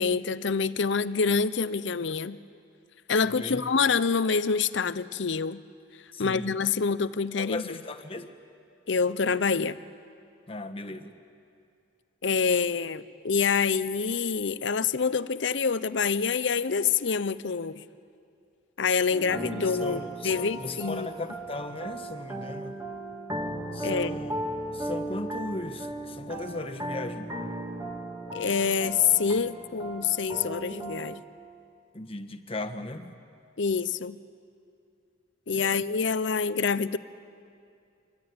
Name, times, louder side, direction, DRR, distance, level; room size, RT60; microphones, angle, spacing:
voice 1, 0.0-2.4 3.1-5.6 6.2-7.6 8.9-9.8 12.2-17.8 18.8-20.0 20.2-21.1 23.8-24.2 28.3-31.2 33.6-34.2 35.5-37.0, left 5 dB, 65° left, 15 dB, 0.7 m, -26 dB
voice 2, 3.2-3.6 6.1-6.5 7.4-8.3 10.5-11.1 19.6-22.8 23.7-24.3 24.7-27.3 31.9-33.1 35.5-35.8, left 2 dB, 30° left, 7 dB, 1.3 m, -37 dB
sound 1, 19.1-31.2, right 1 dB, 15° right, 2.1 m, -36 dB
25.5 x 23.0 x 9.6 m, 2.5 s
head